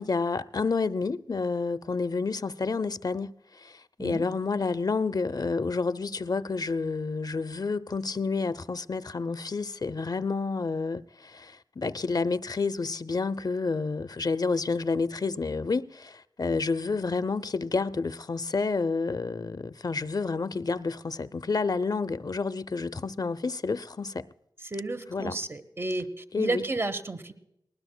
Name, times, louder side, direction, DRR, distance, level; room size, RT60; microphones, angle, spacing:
voice 1, 0.0-24.3 25.1-25.4 26.3-26.6, left 4 dB, 50° left, 0.6 m, -29 dB
voice 2, 24.6-27.3, right 2 dB, 30° right, 1.1 m, -32 dB
19.5 x 19.5 x 2.2 m
wide cardioid pair, 55°, 8 cm